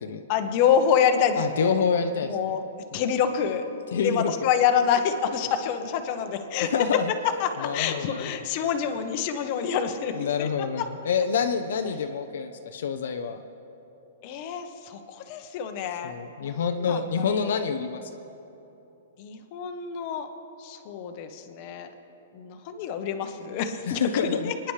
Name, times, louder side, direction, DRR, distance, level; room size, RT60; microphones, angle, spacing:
voice 1, 0.3-1.9 2.2-2.6 2.9-3.6 4.0-6.7 7.4-10.1 10.4-10.5 14.2-17.0 17.3-17.7 19.2-20.3 20.6-21.9 22.3-24.5, left 7 dB, 30° left, 6 dB, 0.9 m, -27 dB
voice 2, 1.4-2.4 3.9-4.3 6.7-7.1 7.6-8.2 10.1-13.4 16.0-18.0 23.9-24.5, left 6 dB, 65° left, 6 dB, 0.7 m, -27 dB
29.0 x 10.0 x 3.3 m, 3.0 s
hypercardioid pair, 175°, 0 cm